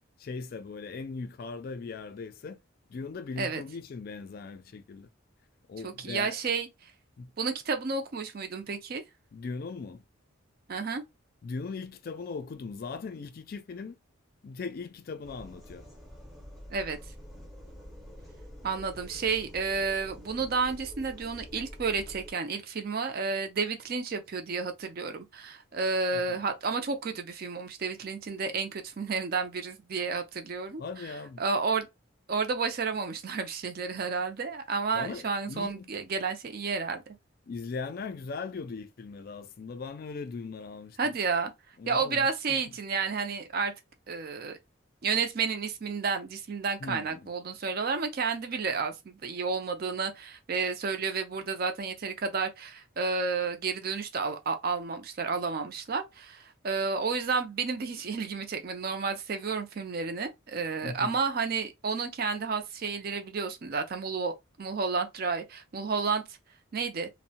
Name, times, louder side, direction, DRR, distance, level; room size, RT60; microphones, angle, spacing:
voice 1, 0.2-2.6 2.9-5.1 5.7-6.4 7.2-7.3 9.3-10.0 11.4-14.0 14.4-15.9 20.4-20.5 26.1-26.4 30.8-31.4 34.9-35.8 37.4-41.2 41.8-42.8 46.8-47.3 60.8-61.2, left 4 dB, 45° left, 0.3 m, -39 dB
voice 2, 5.8-6.7 7.4-9.0 10.7-11.0 16.7-17.0 18.6-30.8 31.4-31.9 32.3-37.0 41.0-41.5 41.9-43.7 44.1-44.6 45.0-64.3 64.6-66.2 66.7-67.1, right 4 dB, 45° right, 0.4 m, -31 dB
sound 1, 15.2-22.3, equal, ahead, 0.6 m, -47 dB
2.6 x 2.1 x 2.7 m
head